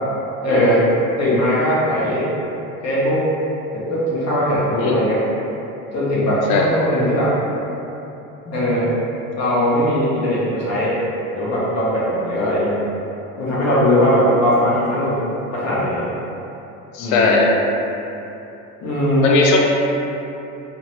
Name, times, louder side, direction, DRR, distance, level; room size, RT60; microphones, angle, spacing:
voice 1, 0.4-0.9 1.2-2.3 2.8-3.2 3.7-5.2 5.9-7.3 8.4-8.9 9.4-11.0 11.3-12.8 13.4-15.2 15.5-16.1 17.0-17.3 18.8-19.3, equal, 40° left, -8 dB, 1.0 m, -19 dB
voice 2, 12.3-12.6 14.2-14.4 16.9-17.5 19.2-19.6, left 3 dB, 75° left, -1 dB, 0.6 m, -18 dB
2.5 x 2.1 x 3.1 m, 2.9 s
hypercardioid pair, 80°, 42 cm